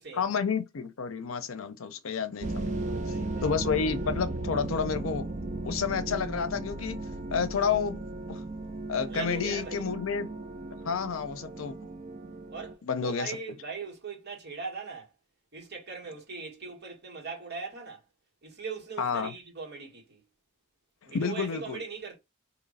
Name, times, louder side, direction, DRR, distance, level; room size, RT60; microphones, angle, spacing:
voice 1, 0.1-2.7 3.4-5.3 5.6-7.0 7.3-8.0 8.3-8.4 8.9-10.3 10.8-11.8 12.8-13.4 19.0-19.3 21.1-21.8, left 6 dB, 75° left, 0.6 m, -30 dB
sound 1, 2.4-12.7, right 2 dB, 35° right, 0.5 m, -36 dB
voice 2, 2.6-3.5 9.1-9.8 12.5-15.1 15.5-18.0 18.4-20.2 21.1-22.2, right 5 dB, 55° right, 1.8 m, -40 dB
3.1 x 3.0 x 3.9 m
head